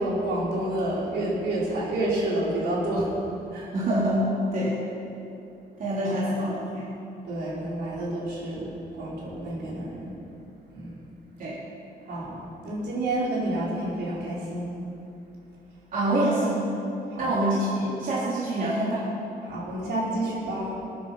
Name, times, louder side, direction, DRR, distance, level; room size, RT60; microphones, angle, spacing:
voice 1, 0.0-3.1 3.5-3.7 6.0-6.3 7.2-10.1 10.7-10.9 12.1-14.7 17.1-17.3 19.4-20.8, right 1 dB, 75° right, -6 dB, 4.7 m, -29 dB
voice 2, 3.7-4.8 5.8-6.8 11.4-11.6 15.9-16.6 17.2-19.1, right 1 dB, 50° right, -8 dB, 3.8 m, -25 dB
21.5 x 10.0 x 5.8 m, 2.8 s
cardioid pair, 155°, 17 cm